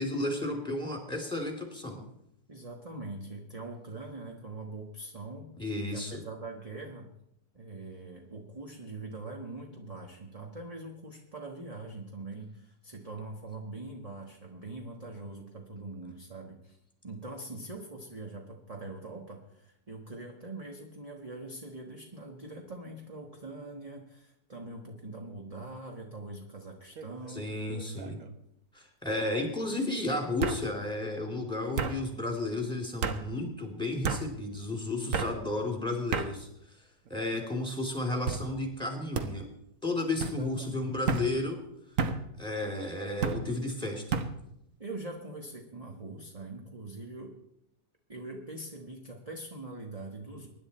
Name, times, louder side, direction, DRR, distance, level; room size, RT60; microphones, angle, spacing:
voice 1, 0.0-2.0 5.6-6.2 27.3-28.2 28.7-36.5 37.1-39.5 39.8-41.6 42.4-44.2, left 2 dB, 5° left, 2 dB, 2.9 m, -33 dB
voice 2, 2.5-5.5 5.9-7.1 7.5-27.6 40.2-40.9 44.8-47.4 48.1-50.5, right 2 dB, 25° right, 1 dB, 1.4 m, -43 dB
sound 1, 27.0-27.3 27.7-28.3 29.3-29.4 30.4-30.6 31.8-32.0 33.0-33.2 34.0-34.2 35.1-35.3 36.1-36.3 37.1-37.5 38.3-38.5 39.1-39.3 40.2-40.4 41.1-41.3 42.0-42.2 43.2-43.4 44.1-44.3, right 5 dB, 55° right, 1.3 m, -31 dB
23.5 x 10.5 x 4.3 m, 0.79 s
omnidirectional pair, 1.7 m